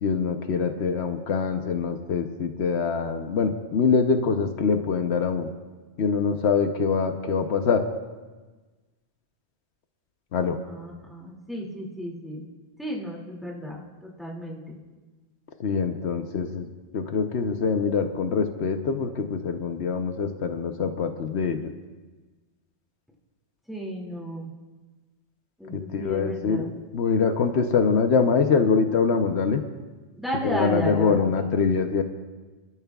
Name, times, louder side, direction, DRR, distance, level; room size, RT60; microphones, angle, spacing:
voice 1, 0.0-5.5 6.0-7.8 10.3-10.6 15.6-16.7 16.9-21.7 25.7-26.7 26.9-29.6 30.4-32.0, left 5 dB, 75° left, 6 dB, 1.1 m, -24 dB
voice 2, 10.5-12.4 12.8-14.8 23.7-24.5 25.6-26.7 30.2-31.4, equal, ahead, -3 dB, 2.4 m, -33 dB
29.0 x 12.5 x 2.4 m, 1.3 s
omnidirectional pair, 1.1 m